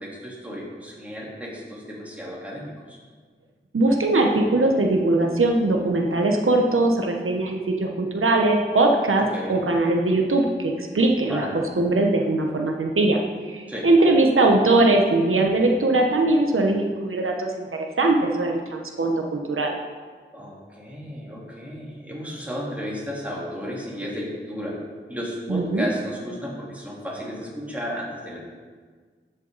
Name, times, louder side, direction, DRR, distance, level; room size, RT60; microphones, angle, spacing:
voice 1, 0.0-3.0 9.2-9.7 11.2-11.6 13.7-13.9 20.3-24.8 25.1-28.4, equal, 5° right, -6 dB, 3.5 m, -33 dB
voice 2, 3.7-13.2 13.5-19.7 25.5-25.8, right 2 dB, 85° right, 1 dB, 1.0 m, -21 dB
13.0 x 8.1 x 4.0 m, 1.6 s
wide cardioid pair, 65°, 21 cm